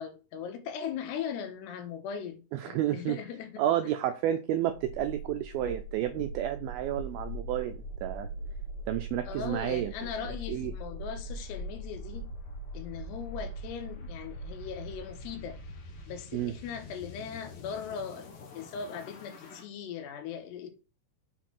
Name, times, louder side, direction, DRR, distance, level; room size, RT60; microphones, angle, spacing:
voice 1, 0.0-3.6 9.3-12.3 12.7-15.6 16.1-20.7, left 7 dB, 85° left, 3.2 m, -39 dB
voice 2, 2.5-3.2 3.6-8.3 8.9-9.9 10.5-10.7 16.3-16.5, right 12 dB, 80° right, 2.2 m, -31 dB
sound 1, 4.7-19.6, right 1 dB, 60° left, 2.7 m, -41 dB
6.7 x 4.5 x 5.9 m
omnidirectional pair, 4.8 m